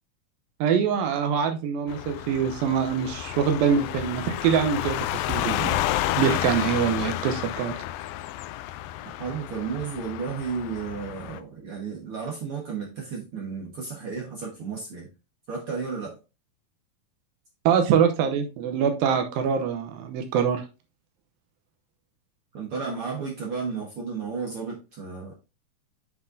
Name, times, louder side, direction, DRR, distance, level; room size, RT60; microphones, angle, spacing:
voice 1, 0.6-5.8 6.2-7.7 17.7-20.6, right 7 dB, 85° right, 6 dB, 2.7 m, -24 dB
sound 1, 1.9-11.4, left 13 dB, 85° left, 2.2 m, -31 dB
voice 2, 9.0-15.1 15.5-16.1 22.5-25.3, right 5 dB, 50° right, -2 dB, 1.8 m, -33 dB
8.3 x 5.7 x 2.6 m, 0.29 s
omnidirectional pair, 4.0 m